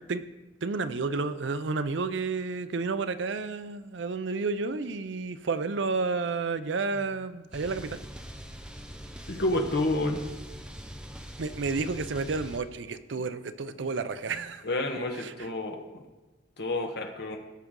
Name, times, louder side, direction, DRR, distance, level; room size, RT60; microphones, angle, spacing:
voice 1, 0.6-8.0 11.4-14.7 15.1-15.3, right 4 dB, 65° right, 12 dB, 0.5 m, -31 dB
sound 1, 7.5-12.6, equal, 5° right, 0.7 m, -43 dB
voice 2, 9.3-10.2 13.8-13.9 14.6-15.8 16.6-17.4, left 2 dB, 60° left, 3 dB, 1.2 m, -29 dB
17.5 x 5.9 x 3.7 m, 1.1 s
head